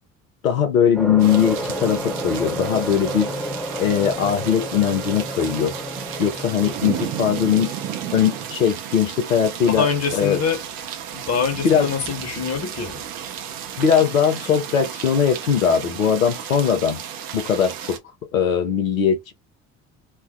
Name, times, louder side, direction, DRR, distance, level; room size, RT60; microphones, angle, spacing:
voice 1, 0.4-3.3 3.8-5.7 6.2-7.7 8.1-9.9 10.1-10.4 11.6-11.9 13.8-17.0 17.3-18.0 18.3-19.3, left 8 dB, 90° left, 0.7 m, -20 dB
sound 1, 0.9-8.4, equal, ahead, 0.9 m, -31 dB
sound 2, 1.2-18.0, right 9 dB, 55° right, 0.8 m, -33 dB
voice 2, 9.6-10.6 11.1-13.0, left 6 dB, 40° left, 1.2 m, -24 dB
3.3 x 2.2 x 2.3 m
hypercardioid pair, 50°, 39 cm